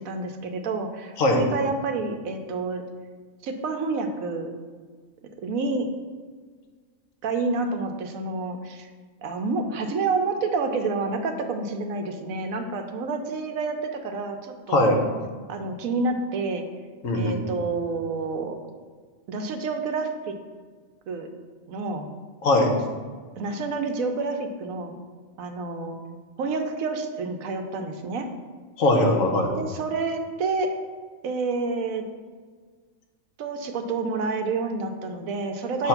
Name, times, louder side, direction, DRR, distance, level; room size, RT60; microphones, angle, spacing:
voice 1, 0.0-2.8 3.4-4.5 5.4-5.9 7.2-8.9 9.2-14.9 15.5-16.6 17.1-18.6 19.3-20.3 21.1-21.3 21.7-22.1 23.4-25.0 25.4-26.0 26.4-28.3 29.6-30.7 31.2-32.1 33.4-35.9, right 3 dB, 90° right, 6 dB, 1.2 m, -28 dB
voice 2, 17.0-17.4 22.4-22.7 28.8-29.5 35.8-35.9, left 2 dB, 80° left, 2 dB, 1.3 m, -20 dB
7.8 x 3.2 x 5.8 m, 1.6 s
omnidirectional pair, 1.4 m